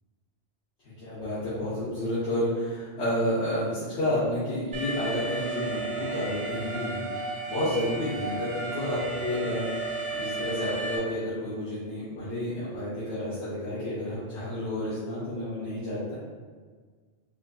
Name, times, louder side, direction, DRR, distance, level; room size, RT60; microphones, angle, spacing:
voice 1, 1.0-9.7 10.1-16.1, left 1 dB, 80° left, -13 dB, 1.4 m, -30 dB
Alarm, 4.7-11.0, right 3 dB, 30° right, 0.4 m, -33 dB
4.9 x 2.6 x 2.3 m, 1.5 s
omnidirectional pair, 1.1 m